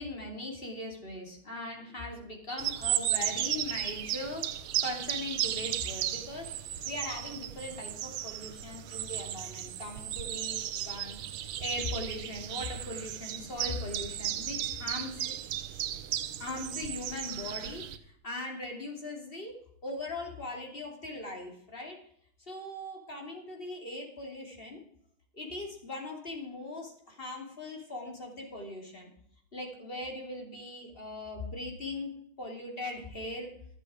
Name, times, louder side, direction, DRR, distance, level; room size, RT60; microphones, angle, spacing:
voice 1, 0.0-6.5 6.8-11.2 11.6-15.4 16.4-22.0 22.4-24.8 25.3-29.1 29.5-33.5, left 2 dB, 25° left, 1 dB, 2.8 m, -40 dB
sound 1, 2.6-18.0, right 11 dB, 85° right, 1.7 m, -35 dB
11.5 x 9.9 x 4.9 m, 0.67 s
omnidirectional pair, 2.4 m